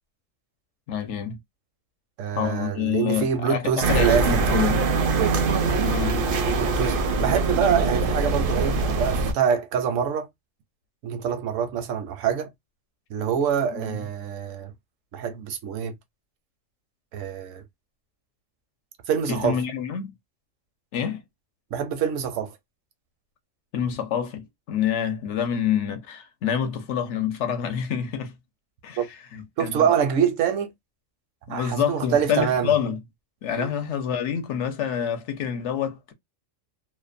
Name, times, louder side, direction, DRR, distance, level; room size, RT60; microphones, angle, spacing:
voice 1, 0.9-1.4 2.3-4.8 5.8-6.2 13.7-14.1 19.3-20.1 20.9-21.2 23.7-28.3 28.8-29.1 29.3-29.9 31.5-33.0 33.4-36.1, left 8 dB, 70° left, 0.9 m, -27 dB
voice 2, 2.2-4.7 6.6-10.3 11.0-12.5 13.1-14.7 15.1-15.9 17.1-17.6 19.1-19.6 21.7-22.5 29.0-29.1 29.6-30.7 31.5-32.7 33.6-33.7, right 7 dB, 80° right, 1.0 m, -25 dB
sound 1, 3.8-9.3, right 3 dB, 60° right, 0.6 m, -23 dB
2.6 x 2.1 x 2.4 m
omnidirectional pair, 1.3 m